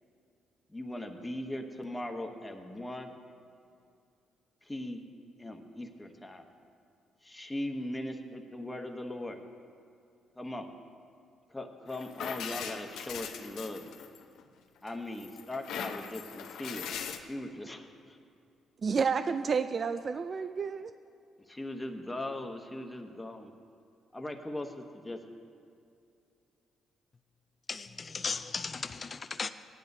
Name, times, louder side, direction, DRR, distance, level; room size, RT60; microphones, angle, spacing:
voice 1, 0.7-3.2 4.6-5.0 5.4-6.4 7.2-9.4 10.3-10.7 11.5-13.8 14.8-18.2 21.5-23.5 24.1-25.2, left 1 dB, 10° left, 1.0 m, -39 dB
sound 1, 11.9-14.4 14.9-17.2, left 7 dB, 85° left, 0.7 m, -40 dB
voice 2, 18.8-20.9, right 5 dB, 40° right, 0.3 m, -30 dB
voice 3, 27.7-29.5, left 4 dB, 35° left, 0.4 m, -36 dB
18.0 x 10.5 x 2.7 m
cardioid pair, 90°, 0 cm